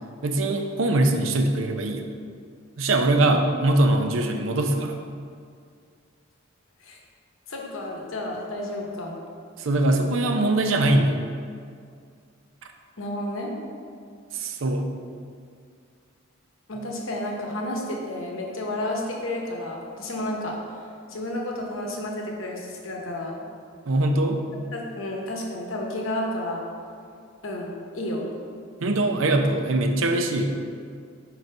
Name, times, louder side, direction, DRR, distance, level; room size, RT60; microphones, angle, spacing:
voice 1, 0.2-2.1 2.8-5.0 9.6-11.2 14.3-14.9 23.9-24.4 28.8-30.5, right 2 dB, 75° right, 5 dB, 0.5 m, -22 dB
voice 2, 7.5-9.2 13.0-13.5 16.7-20.6 21.1-23.4 24.7-26.6 27.4-28.3, left 1 dB, 80° left, 0 dB, 0.9 m, -31 dB
4.6 x 4.0 x 5.2 m, 2.2 s
head